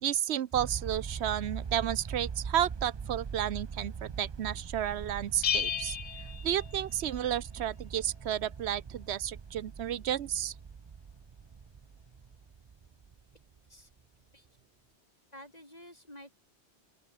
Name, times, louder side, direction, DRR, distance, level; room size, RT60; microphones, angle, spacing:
voice 1, 0.0-6.0 6.4-10.5, right 10 dB, 75° right, 1.0 m, -32 dB
sound 1, 0.5-13.8, right 6 dB, 40° right, 0.4 m, -42 dB
Bell, 5.4-7.3, left 8 dB, 85° left, 1.3 m, -33 dB
voice 2, 15.3-16.3, left 1 dB, 35° left, 7.6 m, -50 dB
open air
omnidirectional pair, 1.1 m